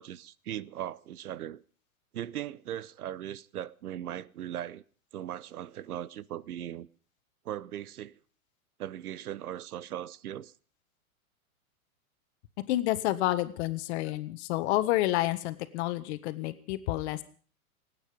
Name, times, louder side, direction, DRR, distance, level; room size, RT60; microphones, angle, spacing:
voice 1, 0.0-1.6 2.1-4.8 5.1-6.9 7.4-8.2 8.8-10.5, right 11 dB, 85° right, 0.8 m, -38 dB
voice 2, 12.7-17.2, left 16 dB, 50° left, 1.5 m, -29 dB
27.5 x 9.2 x 5.1 m
hypercardioid pair, 135°, 43 cm